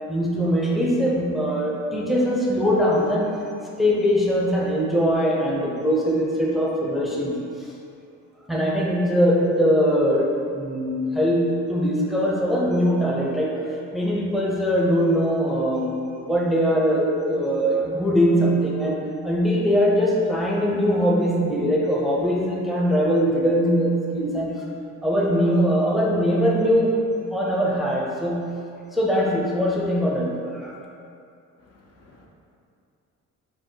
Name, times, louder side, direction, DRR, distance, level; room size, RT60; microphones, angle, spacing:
voice 1, 0.1-3.3 3.8-7.7 8.5-13.6 13.9-15.9 16.2-19.0 19.2-24.5 25.0-27.0 27.3-28.4 28.9-30.7, equal, ahead, -4 dB, 0.6 m, -21 dB
voice 2, 31.6-32.3, left 2 dB, 55° left, -1 dB, 0.7 m, -55 dB
5.1 x 2.1 x 4.5 m, 2.5 s
cardioid pair, 90°, 30 cm